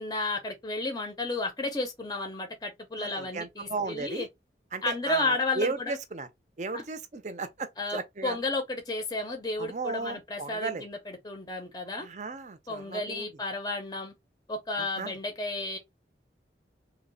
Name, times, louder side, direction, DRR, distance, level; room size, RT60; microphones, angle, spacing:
voice 1, 0.0-4.3 4.8-6.0 6.7-6.8 7.8-12.1 12.7-14.1 14.5-15.8, left 2 dB, 20° left, 0.6 m, -32 dB
voice 2, 3.0-4.3 4.7-6.3 6.6-8.4 9.6-10.8 12.0-13.3 14.8-15.2, right 3 dB, 40° right, 0.5 m, -35 dB
3.0 x 2.1 x 3.7 m
head